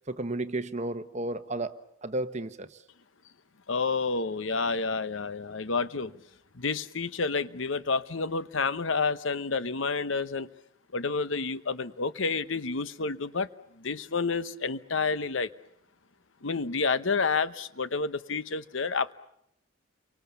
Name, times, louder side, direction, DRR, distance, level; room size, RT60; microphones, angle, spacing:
voice 1, 0.1-2.7, right 2 dB, 35° right, 10 dB, 1.2 m, -33 dB
voice 2, 3.7-6.1 6.5-10.5 10.9-13.5 13.8-15.5 16.4-19.1, left 4 dB, 75° left, 15 dB, 0.9 m, -29 dB
29.5 x 24.0 x 7.0 m, 0.76 s
head